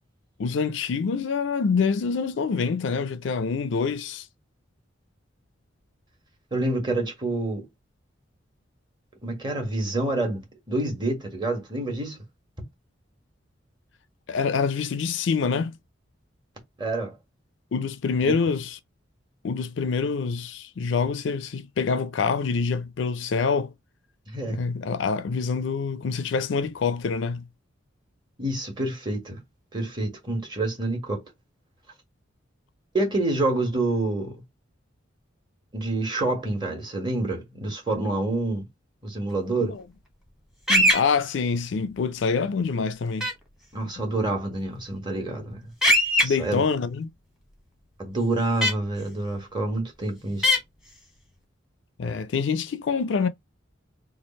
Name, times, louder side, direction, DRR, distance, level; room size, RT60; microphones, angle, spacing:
voice 1, 0.4-4.3 14.3-15.8 17.7-18.8 19.4-23.7 24.5-27.4 39.6-39.8 40.7-43.3 44.0-44.1 46.2-47.1 52.0-53.3, left 5 dB, 65° left, 0.4 m, -26 dB
voice 2, 6.5-7.7 9.2-10.4 10.7-12.2 16.8-17.2 18.2-18.3 24.3-24.6 28.4-29.4 29.7-31.2 32.9-34.4 35.7-38.6 39.0-39.7 43.7-45.7 46.2-46.6 48.0-50.6, right 2 dB, 25° right, 1.4 m, -27 dB
sound 1, 40.7-41.0 43.2-43.3 45.8-46.2 48.6-48.7 50.4-50.6, left 1 dB, ahead, 1.1 m, -19 dB
3.2 x 2.4 x 4.1 m
head